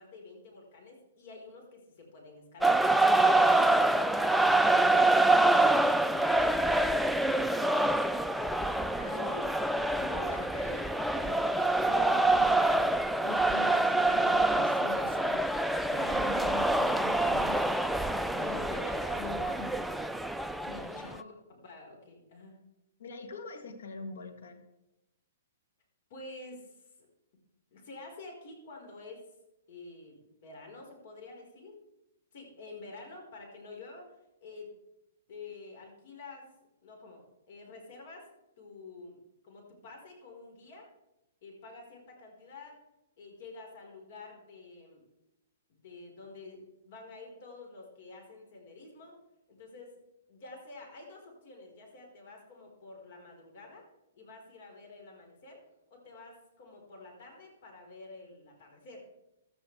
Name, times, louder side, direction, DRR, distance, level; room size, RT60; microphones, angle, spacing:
voice 1, 0.0-2.9 3.1-5.6 6.1-8.7 11.5-11.7 12.0-12.7 20.8-21.4 21.6-22.6 26.1-27.0 27.7-29.3 29.7-31.8 32.3-34.7 35.3-36.5 36.8-38.3 38.6-39.2 39.4-40.9 41.4-42.8 43.2-45.0 45.7-49.2 49.5-50.0 50.3-53.9 54.2-55.6 55.9-59.1, left 3 dB, 55° left, 2 dB, 4.6 m, -49 dB
sound 1, 2.6-21.1, right 2 dB, ahead, 0.4 m, -26 dB
voice 2, 3.2-3.8 9.0-9.5 10.0-11.6 11.8-15.5 15.9-17.6 18.4-19.7 20.6-21.3 23.0-24.6, left 4 dB, 75° left, 6 dB, 2.0 m, -43 dB
15.5 x 13.0 x 3.4 m, 0.93 s
hypercardioid pair, 145°, 0 cm